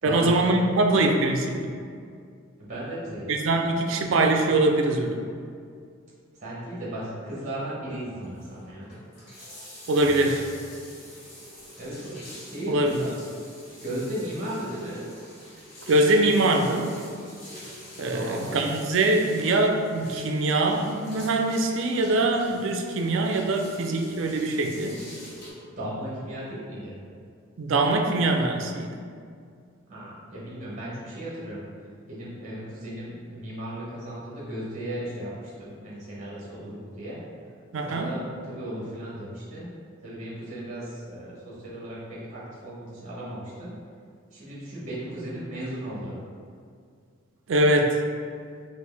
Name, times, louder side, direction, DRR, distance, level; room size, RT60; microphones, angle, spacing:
voice 1, 0.0-1.7 3.3-5.2 9.9-10.5 12.7-13.1 15.9-16.9 18.0-25.0 27.6-28.9 37.7-38.1 47.5-47.9, right 2 dB, 65° right, 4 dB, 0.4 m, -23 dB
voice 2, 2.6-3.3 6.4-8.9 11.8-13.1 13.8-15.1 18.1-18.6 25.8-27.1 29.9-31.7 32.1-37.2 37.8-39.7 40.0-43.7 44.3-46.2, right 1 dB, 35° right, -8 dB, 1.1 m, -36 dB
sound 1, 8.2-25.5, equal, 40° left, 1.3 m, -45 dB
4.4 x 2.5 x 3.3 m, 2.2 s
head